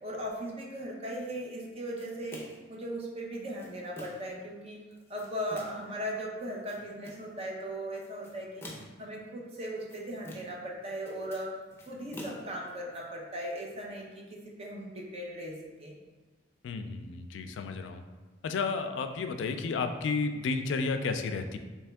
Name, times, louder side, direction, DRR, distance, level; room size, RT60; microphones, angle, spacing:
voice 1, 0.0-2.4 2.7-11.5 11.9-16.0 19.4-19.8, equal, 35° right, -2 dB, 0.7 m, -38 dB
sound 1, 2.0-2.7 3.3-4.4 4.9-5.9 6.4-7.3 8.0-9.1 9.6-10.7 10.9-13.0, left 1 dB, 15° left, 0.6 m, -47 dB
voice 2, 16.6-18.0 18.4-21.6, left 4 dB, 85° left, 7 dB, 0.3 m, -32 dB
3.5 x 3.0 x 3.4 m, 1.2 s
head